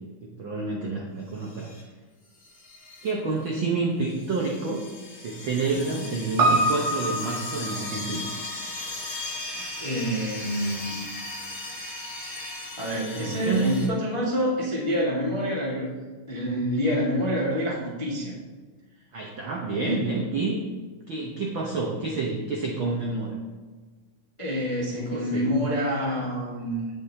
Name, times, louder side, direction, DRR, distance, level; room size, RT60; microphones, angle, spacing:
voice 1, 0.2-1.7 3.0-4.8 5.1-8.3 13.0-13.7 19.1-20.6 21.1-23.4 24.9-25.5, right 3 dB, 85° right, -1 dB, 1.0 m, -29 dB
sound 1, 1.4-1.8 2.4-3.1 3.5-3.6 4.1-13.9, left 2 dB, 30° left, 1.6 m, -37 dB
voice 2, 5.7-6.0 9.4-11.1 12.8-15.9 16.3-18.3 19.8-20.0 24.4-26.9, equal, 55° left, -5 dB, 0.3 m, -27 dB
Piano, 6.4-10.9 11.2-11.3, right 2 dB, 65° right, 2.0 m, -28 dB
16.5 x 5.5 x 2.8 m, 1.4 s
omnidirectional pair, 3.7 m